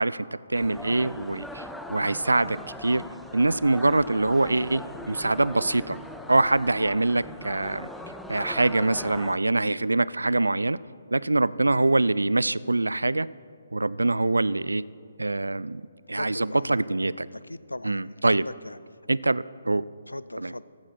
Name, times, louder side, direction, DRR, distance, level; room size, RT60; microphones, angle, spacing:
voice 1, 0.0-3.0 3.3-6.0 6.3-7.9 8.3-10.8 11.1-13.3 13.7-14.8 15.2-15.8 16.1-17.3 17.8-18.4 19.1-19.8 20.4-20.5, right 2 dB, 75° right, 20 dB, 0.3 m, -24 dB
sound 1, 0.5-9.4, left 1 dB, ahead, 0.5 m, -40 dB
voice 2, 16.0-16.8 17.3-18.8 20.1-20.6, left 1 dB, 80° left, 18 dB, 0.4 m, -38 dB
15.5 x 13.0 x 4.4 m, 2.3 s
figure-of-eight pair, 140°, 0 cm